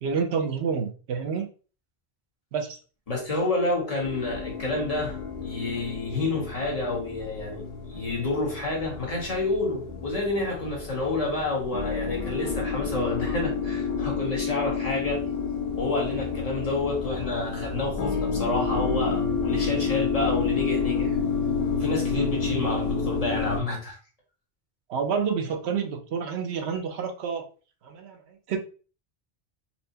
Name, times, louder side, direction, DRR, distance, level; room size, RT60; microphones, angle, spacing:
voice 1, 0.0-1.5 2.5-2.8 24.9-27.5 27.8-28.6, right 6 dB, 85° right, 5 dB, 0.9 m, -29 dB
voice 2, 3.1-15.2 15.8-21.2 21.7-24.0, left 2 dB, 35° left, -2 dB, 1.2 m, -29 dB
sound 1, 4.0-23.6, left 5 dB, 70° left, 0.9 m, -29 dB
4.4 x 2.1 x 2.7 m, 0.37 s
omnidirectional pair, 1.1 m